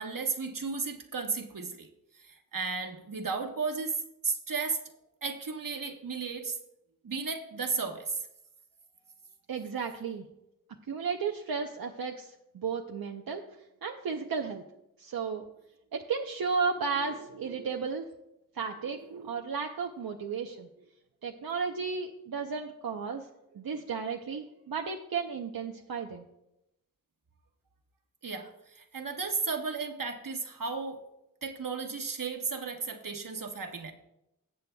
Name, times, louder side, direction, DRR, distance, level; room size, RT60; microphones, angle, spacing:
voice 1, 0.0-1.9 2.2-4.8 5.2-6.6 7.0-8.2 28.2-31.0 31.4-33.9, right 4 dB, 70° right, 4 dB, 1.3 m, -34 dB
voice 2, 9.5-10.3 10.9-13.4 13.8-14.6 15.0-15.4 15.9-18.1 18.5-20.7 21.2-23.3 23.5-26.3, right 5 dB, 85° right, 2 dB, 0.7 m, -34 dB
19.0 x 7.7 x 2.3 m, 0.86 s
cardioid pair, 40°, 35 cm